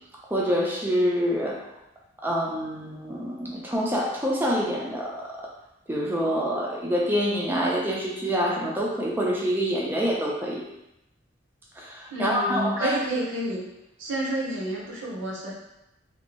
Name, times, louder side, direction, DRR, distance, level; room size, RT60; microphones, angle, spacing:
voice 1, 0.3-1.6 2.2-5.4 5.9-10.6 11.8-13.0, equal, 10° right, -3 dB, 0.4 m, -26 dB
voice 2, 12.1-13.6 14.0-15.5, right 1 dB, 70° right, -4 dB, 0.7 m, -29 dB
2.6 x 2.0 x 2.9 m, 0.88 s
head